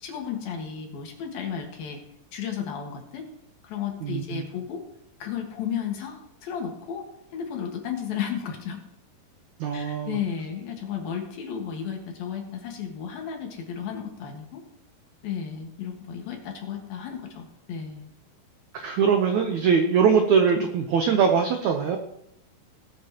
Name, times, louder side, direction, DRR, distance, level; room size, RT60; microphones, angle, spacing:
voice 1, 0.0-2.0 2.3-3.3 3.6-4.8 5.2-7.1 7.3-8.8 9.7-14.6 15.2-18.1, left 8 dB, 70° left, 2 dB, 3.3 m, -33 dB
voice 2, 4.0-4.4 9.6-10.2 18.7-22.0, right 6 dB, 80° right, 5 dB, 1.7 m, -22 dB
20.0 x 8.2 x 3.0 m, 0.78 s
omnidirectional pair, 4.5 m